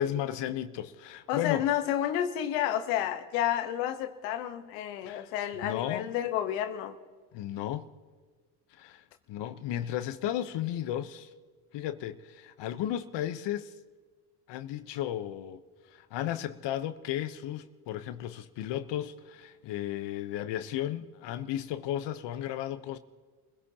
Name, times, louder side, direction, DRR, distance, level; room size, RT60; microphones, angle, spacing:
voice 1, 0.0-1.7 5.0-5.3 5.6-6.1 7.3-7.9 8.8-11.3 11.7-13.7 14.5-15.6 15.9-23.0, left 12 dB, 65° left, 1.0 m, -34 dB
voice 2, 1.3-7.0, left 11 dB, 85° left, 1.2 m, -30 dB
30.0 x 16.5 x 2.9 m
hypercardioid pair, 70°, 46 cm